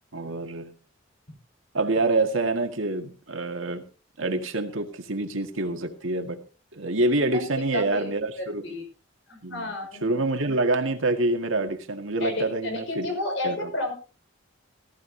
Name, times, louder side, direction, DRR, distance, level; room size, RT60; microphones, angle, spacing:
voice 1, 0.1-0.7 1.7-3.8 4.2-6.4 6.7-8.8 9.4-9.7 10.0-13.1 13.4-13.7, right 2 dB, 80° right, 1.9 m, -26 dB
voice 2, 7.7-8.8 9.3-10.3 12.2-13.9, left 2 dB, 65° left, 5.4 m, -32 dB
18.0 x 14.5 x 2.8 m
head